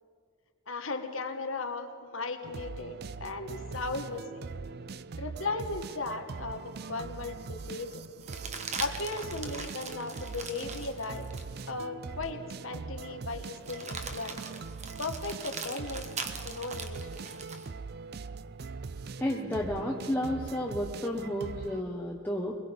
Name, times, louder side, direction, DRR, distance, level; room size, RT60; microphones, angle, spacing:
voice 1, 0.7-4.4 5.2-8.1 8.8-11.3 11.7-14.4 15.0-16.1 16.4-17.2, left 3 dB, 70° left, 6 dB, 1.5 m, -37 dB
sound 1, 2.4-21.8, right 4 dB, 45° right, 0.4 m, -42 dB
sound 2, 8.2-11.7 12.2-12.3 13.6-17.7 19.9-20.7, right 5 dB, 30° right, 1.3 m, -41 dB
voice 2, 19.2-22.5, left 1 dB, 10° left, -3 dB, 1.1 m, -32 dB
22.5 x 21.5 x 5.3 m, 2.1 s
head